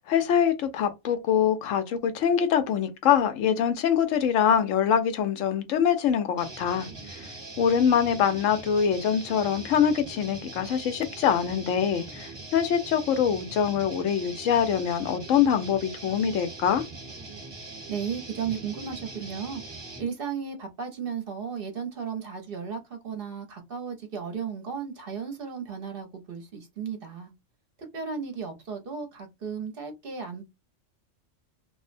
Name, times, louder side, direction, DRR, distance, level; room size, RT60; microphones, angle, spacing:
voice 1, 0.0-7.3 7.6-16.8, left 8 dB, 85° left, 1.0 m, -24 dB
sound 1, 6.4-20.1, right 3 dB, 25° right, 0.9 m, -42 dB
voice 2, 17.9-19.6 20.0-27.3 27.8-30.4, right 6 dB, 55° right, 0.8 m, -35 dB
2.5 x 2.1 x 2.4 m
omnidirectional pair, 1.3 m